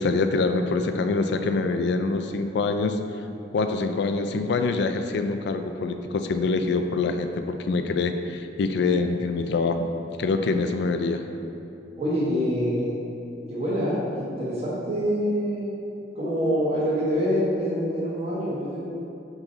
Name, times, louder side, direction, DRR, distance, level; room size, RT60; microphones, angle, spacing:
voice 1, 0.0-3.0 3.5-9.9 10.2-11.2, left 3 dB, 70° left, 7 dB, 0.4 m, -25 dB
voice 2, 12.0-13.0 13.5-15.7 16.1-18.8, equal, 35° right, -9 dB, 1.3 m, -25 dB
5.4 x 4.8 x 3.9 m, 2.8 s
head